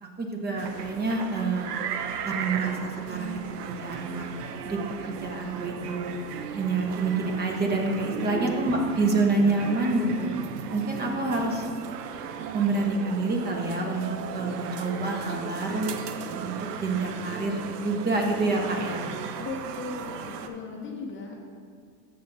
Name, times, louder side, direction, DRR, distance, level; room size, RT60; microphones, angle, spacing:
voice 1, 0.0-1.7 2.2-4.3 4.6-6.1 6.5-10.3 10.7-11.7 12.5-15.9 16.3-16.5 16.8-19.1, right 3 dB, 20° right, 1 dB, 1.1 m, -27 dB
sound 1, 0.6-20.5, right 7 dB, 85° right, 0.8 m, -36 dB
voice 2, 19.4-21.4, left 4 dB, 25° left, 1 dB, 0.9 m, -37 dB
13.0 x 7.5 x 2.7 m, 2.2 s
supercardioid pair, 135°, 46 cm